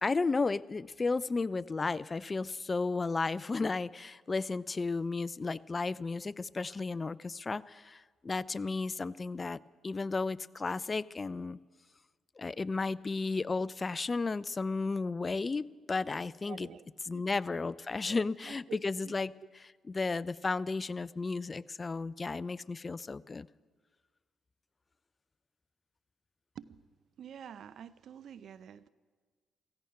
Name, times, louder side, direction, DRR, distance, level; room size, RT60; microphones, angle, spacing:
voice 1, 0.0-11.6 12.4-16.7 17.1-19.3 19.9-23.5, left 3 dB, 35° left, 20 dB, 0.4 m, -33 dB
voice 2, 16.4-16.9 17.1-17.2 18.1-19.1 26.5-26.8 27.2-28.9, right 8 dB, 65° right, 17 dB, 0.5 m, -48 dB
15.5 x 15.5 x 5.7 m, 1.5 s
supercardioid pair, 65°, 0 cm